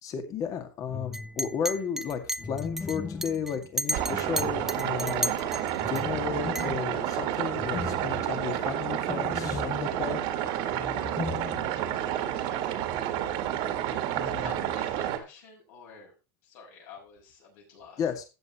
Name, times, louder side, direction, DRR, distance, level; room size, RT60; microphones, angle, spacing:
voice 1, 0.0-5.3 5.9-10.2 18.0-18.2, left 7 dB, 35° left, 7 dB, 2.1 m, -33 dB
sound 1, 0.9-1.6 2.4-5.1 5.8-12.0 12.3-12.4 14.2-14.6, left 4 dB, 15° left, 1.0 m, -39 dB
Chink clink, 1.1-6.0 6.6-6.7, right 1 dB, 5° right, 0.5 m, -33 dB
sound 2, 3.9-15.2, right 11 dB, 55° right, 1.9 m, -30 dB
voice 2, 14.1-16.1 16.4-18.1, left 4 dB, 65° left, -1 dB, 6.5 m, -49 dB
14.5 x 8.2 x 3.1 m, 0.29 s
supercardioid pair, 140°, 10 cm